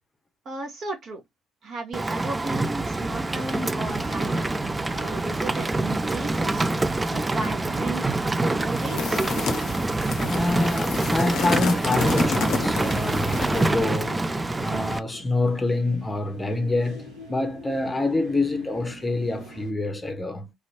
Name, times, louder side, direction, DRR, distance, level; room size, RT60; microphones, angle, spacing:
voice 1, 0.4-1.2 1.6-4.5 4.9-6.7 7.1-9.2, right 3 dB, 50° right, 1.4 m, -35 dB
Rain, 1.9-15.0, right 2 dB, 15° right, 0.3 m, -26 dB
sound 1, 3.3-19.7, equal, 75° right, 2.0 m, -46 dB
sound 2, 8.7-13.8, left 6 dB, 55° left, 0.6 m, -30 dB
voice 2, 10.3-14.2 14.6-20.5, left 2 dB, 15° left, 0.8 m, -26 dB
3.4 x 2.8 x 2.7 m
figure-of-eight pair, 50°, 0 cm